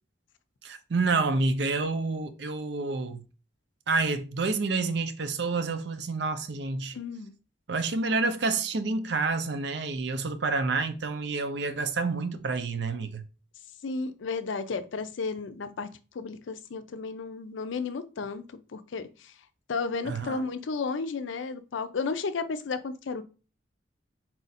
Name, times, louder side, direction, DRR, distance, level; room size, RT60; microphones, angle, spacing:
voice 1, 0.6-3.2 3.9-7.0 7.7-13.2 20.0-20.5, right 3 dB, 60° right, 0.5 m, -28 dB
voice 2, 6.9-7.3 13.8-15.9 16.1-18.5 18.7-19.3 19.7-23.2, left 4 dB, 80° left, 0.4 m, -33 dB
4.3 x 2.5 x 4.0 m
head